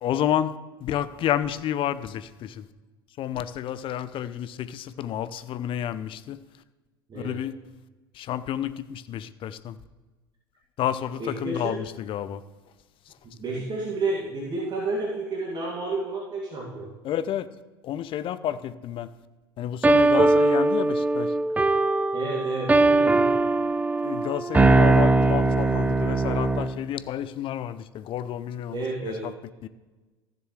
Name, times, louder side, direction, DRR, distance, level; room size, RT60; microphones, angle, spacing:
voice 1, 0.0-2.7 3.2-6.4 7.1-7.5 8.1-9.8 10.8-12.4 13.1-13.2 17.0-17.5 17.8-19.1 19.6-21.3 24.0-29.3 29.6-29.7, left 11 dB, 45° left, 0.6 m, -30 dB
voice 2, 11.2-11.8 13.4-16.9 22.1-23.3 28.7-29.2, right 3 dB, 35° right, 2.2 m, -30 dB
sound 1, 19.8-26.8, right 2 dB, 10° right, 0.5 m, -21 dB
15.0 x 7.0 x 3.2 m
hypercardioid pair, 75°, 13 cm